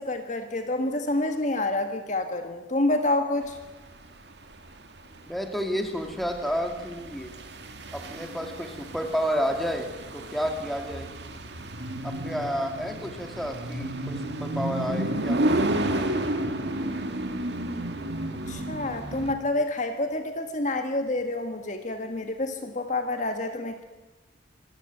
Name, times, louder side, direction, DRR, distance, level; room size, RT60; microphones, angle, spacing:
voice 1, 0.0-3.6 18.3-23.8, left 2 dB, 40° left, 6 dB, 1.7 m, -28 dB
sound 1, 3.5-19.3, right 1 dB, 60° right, 2.2 m, -32 dB
voice 2, 5.3-7.3 7.9-9.9 10.1-11.1 12.0-16.1, equal, ahead, 4 dB, 2.4 m, -31 dB
25.5 x 15.5 x 9.3 m, 1.2 s
head